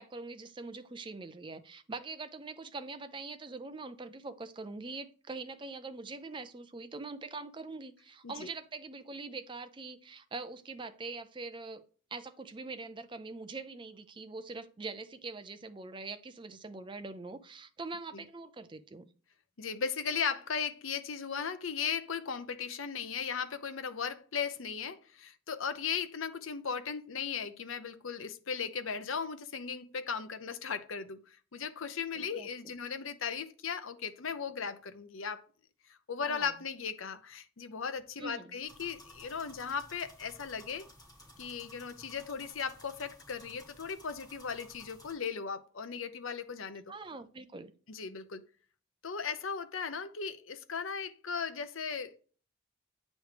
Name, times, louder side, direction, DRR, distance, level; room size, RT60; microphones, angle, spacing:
voice 1, 0.0-11.8 12.1-19.1 32.1-32.7 36.3-36.5 38.2-38.6 46.9-47.7, right 3 dB, 25° right, 0.4 m, -43 dB
voice 2, 19.6-31.2 31.5-35.4 36.1-40.9 41.4-46.8 47.9-48.4 49.0-52.2, left 6 dB, 70° left, 0.7 m, -37 dB
sound 1, 38.6-45.1, left 1 dB, 20° left, 2.6 m, -55 dB
9.3 x 3.1 x 4.9 m
head